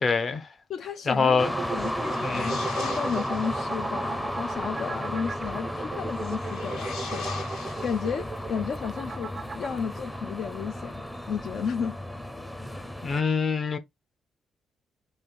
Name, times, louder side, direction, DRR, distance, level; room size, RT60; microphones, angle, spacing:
voice 1, 0.0-0.5 1.1-1.5 2.2-2.6 13.0-13.8, left 5 dB, 40° left, 0.8 m, -25 dB
voice 2, 0.7-1.5 1.7-10.9 11.3-12.0, left 6 dB, 65° left, 0.4 m, -33 dB
sound 1, 1.3-9.8, right 5 dB, 40° right, 0.3 m, -37 dB
sound 2, 1.4-13.2, equal, 5° left, 0.6 m, -33 dB
sound 3, 1.7-3.7 6.1-8.5, left 4 dB, 85° left, 1.8 m, -39 dB
3.2 x 2.6 x 4.4 m
cardioid pair, 90°, 0 cm